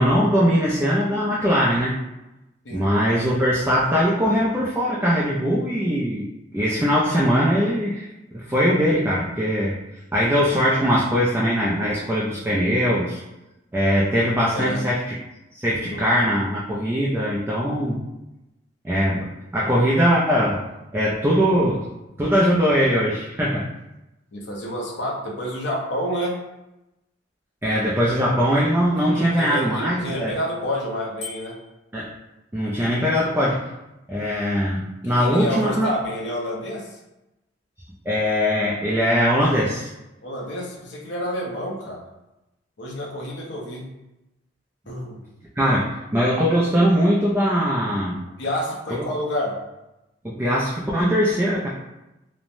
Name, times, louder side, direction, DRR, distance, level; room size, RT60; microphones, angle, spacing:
voice 1, 0.0-2.0 2.7-6.2 6.5-8.1 8.3-9.8 10.1-13.2 13.7-15.2 15.5-18.0 18.8-20.6 20.9-21.9 22.2-23.7 27.6-30.3 31.9-32.1 32.5-33.7 34.1-35.9 38.1-39.9 45.6-48.2 48.9-49.0 50.2-51.7, equal, 10° right, -6 dB, 0.3 m, -21 dB
voice 2, 14.5-14.8 15.9-16.0 24.3-26.4 29.0-31.6 35.0-37.0 40.2-42.0 42.8-43.9 44.9-45.2 48.4-49.6, equal, 65° left, -2 dB, 0.7 m, -29 dB
Bicycle bell, 31.2-31.8, left 4 dB, 35° left, 0.9 m, -37 dB
3.1 x 2.1 x 2.5 m, 0.95 s
head